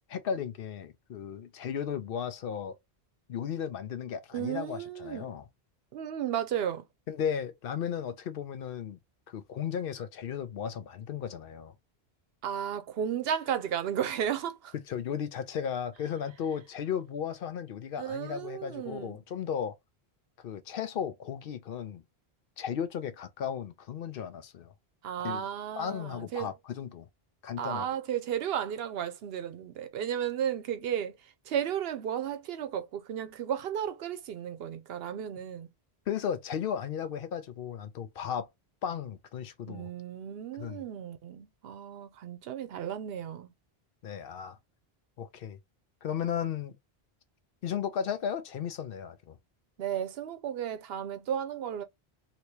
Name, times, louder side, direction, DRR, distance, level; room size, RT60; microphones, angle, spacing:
voice 1, 0.1-2.8 3.3-5.5 7.1-9.0 9.3-11.7 14.9-19.8 20.4-22.0 22.6-24.7 25.2-25.5 25.8-27.1 27.4-27.9 36.1-38.5 38.8-39.9 40.6-40.8 44.0-44.6 45.2-45.6 46.0-46.8 47.6-49.4, left 8 dB, 65° left, 0.7 m, -35 dB
voice 2, 4.3-5.3 5.9-6.9 12.4-14.7 18.0-19.2 25.0-26.5 27.6-35.7 39.7-43.5 49.8-51.8, right 9 dB, 75° right, 0.8 m, -34 dB
2.9 x 2.8 x 3.1 m
omnidirectional pair, 1.0 m